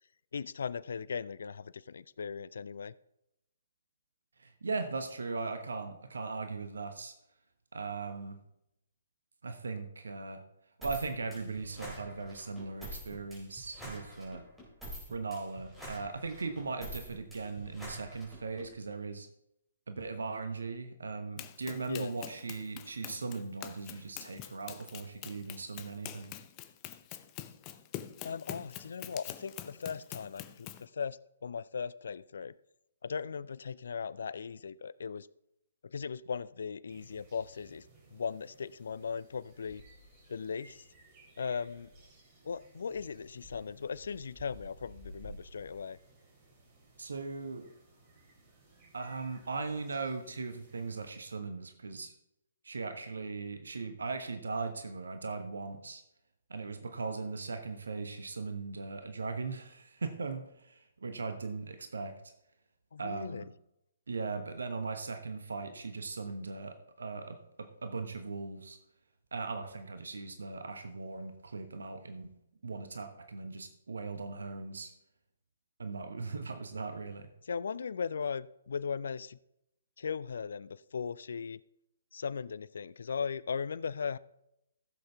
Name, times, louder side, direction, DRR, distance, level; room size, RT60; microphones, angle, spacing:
voice 1, 0.3-2.9 21.8-22.1 28.2-32.6 33.0-35.3 35.9-37.9 38.1-39.8 40.3-40.8 41.4-41.9 42.4-46.0 62.9-63.5 77.4-79.4 80.0-81.6 82.1-84.2, left 6 dB, 60° left, 20 dB, 0.3 m, -38 dB
voice 2, 4.4-7.1 7.7-8.4 9.4-10.4 10.8-14.4 15.1-19.3 19.9-26.3 47.0-47.7 48.9-52.1 52.6-56.0 56.5-62.3 63.0-63.5 64.1-68.8 69.3-72.3 72.6-74.9 75.8-77.3, right 4 dB, 65° right, 8 dB, 1.1 m, -39 dB
sound 1, 10.8-18.7, equal, 5° right, 4.2 m, -46 dB
Run, 21.4-30.9, left 12 dB, 25° left, 0.6 m, -45 dB
sound 2, 36.9-51.1, right 1 dB, 30° right, 3.5 m, -56 dB
15.0 x 7.8 x 3.5 m, 0.82 s
figure-of-eight pair, 130°, 0 cm